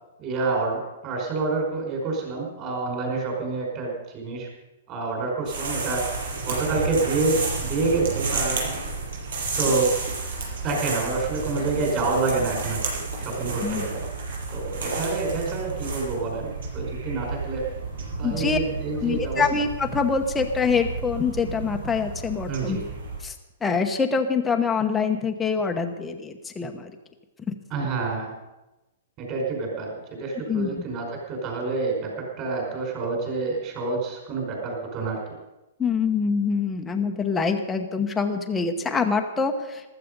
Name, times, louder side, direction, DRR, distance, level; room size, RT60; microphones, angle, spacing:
voice 1, 0.2-4.5 4.9-8.7 9.6-10.0 10.6-14.0 14.5-17.6 18.2-19.5 22.5-22.8 27.7-28.3 29.2-35.2, right 3 dB, 30° right, 0 dB, 5.1 m, -28 dB
sound 1, 5.4-23.2, right 4 dB, 80° right, 6.7 m, -31 dB
voice 2, 18.2-18.6 19.0-22.8 23.2-23.3 23.6-26.9 30.5-30.8 35.8-39.9, left 5 dB, 10° left, 3 dB, 1.0 m, -25 dB
15.0 x 13.0 x 5.4 m, 1.0 s
hypercardioid pair, 165°, 0 cm